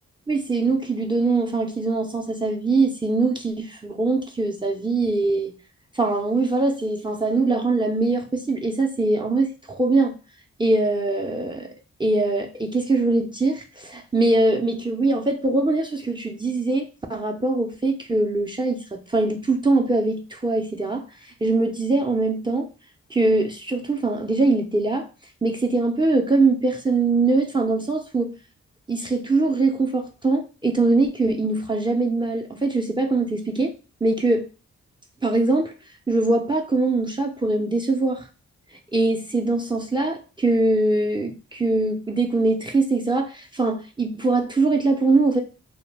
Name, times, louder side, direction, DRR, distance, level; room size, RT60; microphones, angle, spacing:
voice 1, 0.3-5.5 6.0-10.2 10.6-11.7 12.0-21.0 21.4-22.7 23.1-25.1 25.4-28.3 28.9-33.7 34.0-34.5 35.2-35.7 36.1-38.2 38.9-45.4, right 3 dB, 15° right, 0.5 m, -22 dB
2.2 x 2.1 x 3.3 m
cardioid pair, 50°, 30 cm